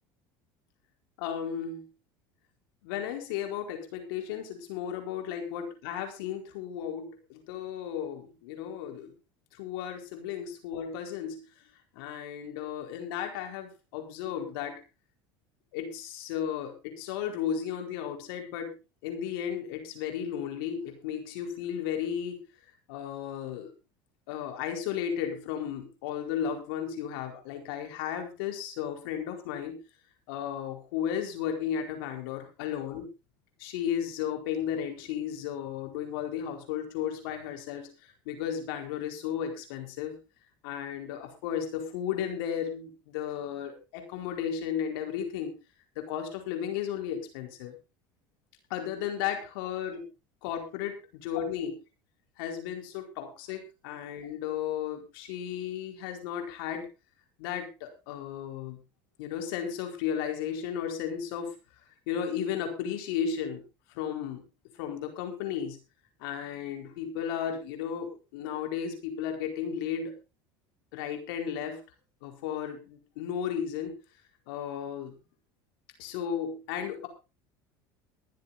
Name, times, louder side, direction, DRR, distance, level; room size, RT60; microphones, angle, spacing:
voice 1, 1.2-1.8 2.8-9.1 9.5-11.4 11.9-14.8 15.7-18.8 19.0-22.4 22.9-23.7 24.3-29.8 30.3-33.1 33.6-40.2 40.6-45.5 45.9-47.8 48.7-50.0 50.4-51.8 52.4-56.9 57.4-58.8 59.2-61.5 62.1-63.6 63.9-64.4 64.8-65.8 66.2-70.2 70.9-71.8 72.2-74.0 74.5-75.1 76.0-77.1, left 8 dB, 80° left, 4 dB, 4.5 m, -34 dB
22.0 x 7.7 x 4.1 m, 0.30 s
supercardioid pair, 95°, 12 cm